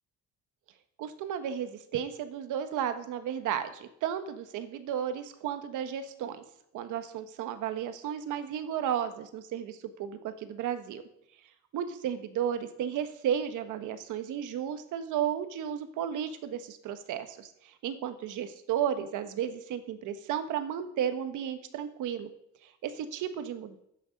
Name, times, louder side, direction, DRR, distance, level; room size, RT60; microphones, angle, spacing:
voice 1, 1.0-6.4 6.7-11.0 11.7-22.3 22.6-23.8, right 9 dB, 85° right, 9 dB, 1.2 m, -33 dB
12.0 x 9.2 x 5.2 m, 0.76 s
cardioid pair, 90°, 30 cm